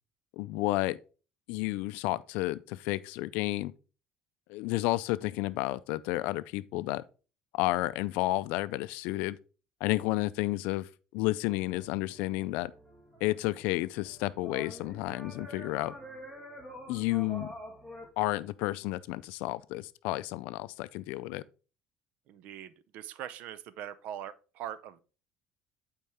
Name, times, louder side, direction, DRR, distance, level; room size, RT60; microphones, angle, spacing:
voice 1, 0.4-1.0 1.5-3.7 4.5-7.0 7.5-9.4 9.8-12.7 13.2-15.9 16.9-17.5 18.2-21.4, left 18 dB, 80° left, 0.4 m, -31 dB
sound 1, 11.5-18.1, equal, 5° right, 1.8 m, -47 dB
voice 2, 22.3-25.0, right 10 dB, 65° right, 0.6 m, -42 dB
8.5 x 4.5 x 3.5 m
cardioid pair, 130°, 3 cm